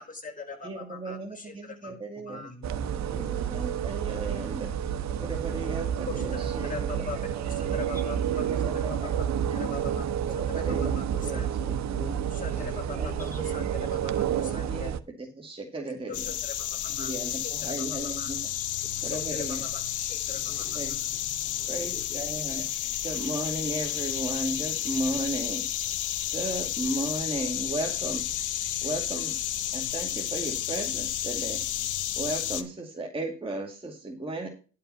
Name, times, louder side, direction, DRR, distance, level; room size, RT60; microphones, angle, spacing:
voice 1, 0.0-1.9 2.3-2.5 6.0-8.4 8.7-9.1 9.6-10.1 10.5-10.9 11.3-11.5 12.4-13.0 13.5-14.9 16.1-16.5 16.8-17.5 17.9-18.3 19.0-21.0, left 4 dB, 25° left, 3 dB, 4.4 m, -41 dB
voice 2, 0.6-2.4 3.0-4.7 5.2-7.3 8.5-9.7 10.4-10.9 11.2-11.6 12.8-13.7 14.5-16.3 17.0-18.4 19.0-19.7 20.7-20.9 21.7-22.6 23.0-25.7 26.3-28.2 28.8-29.4 29.7-31.6 32.2-34.5, right 2 dB, 20° right, 0 dB, 2.4 m, -35 dB
voice 3, 2.2-3.7 6.1-8.1 8.4-8.5 11.6-14.1 16.9-17.8 18.1-18.7 19.0-19.2 20.3-22.8 28.0-28.4, left 1 dB, 10° left, 2 dB, 4.2 m, -48 dB
sound 1, 2.6-15.0, right 9 dB, 65° right, 0.9 m, -30 dB
sound 2, 16.1-32.6, left 11 dB, 80° left, 1.3 m, -31 dB
11.5 x 5.8 x 5.7 m, 0.35 s
cardioid pair, 90°, 30 cm